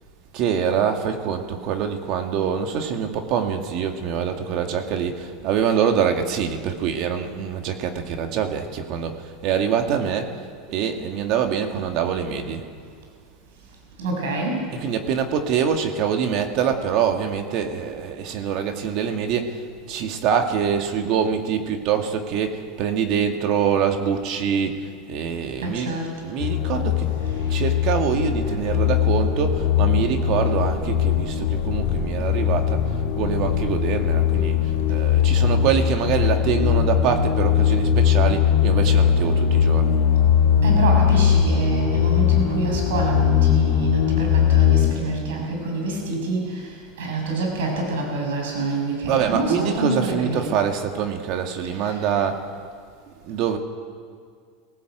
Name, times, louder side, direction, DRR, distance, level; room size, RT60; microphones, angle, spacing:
voice 1, 0.3-10.3 10.7-12.6 14.7-19.6 19.9-25.9 26.2-27.1 27.5-34.6 34.9-40.0 49.1-52.4 53.2-53.6, right 7 dB, 55° right, 5 dB, 2.2 m, -24 dB
voice 2, 14.0-14.6 25.6-26.1 40.6-46.4 47.0-50.5 51.8-52.0, right 2 dB, 85° right, 1 dB, 6.5 m, -26 dB
sound 1, 26.4-44.9, left 8 dB, 65° left, 3.4 m, -20 dB
19.5 x 17.5 x 8.1 m, 2.1 s
supercardioid pair, 115°, 0 cm